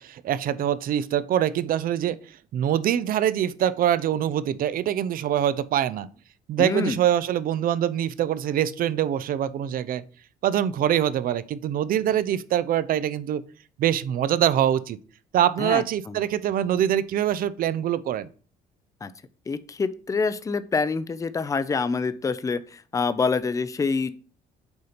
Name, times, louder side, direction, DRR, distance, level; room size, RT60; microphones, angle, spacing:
voice 1, 0.0-2.2 2.5-6.1 6.5-10.0 10.4-13.4 13.8-15.0 15.3-18.3, right 10 dB, 60° right, 16 dB, 0.5 m, -24 dB
voice 2, 6.6-7.0 15.6-16.1 19.0-19.1 19.5-24.1, left 4 dB, 20° left, 13 dB, 0.5 m, -26 dB
7.9 x 2.8 x 5.0 m, 0.41 s
cardioid pair, 85°, 17 cm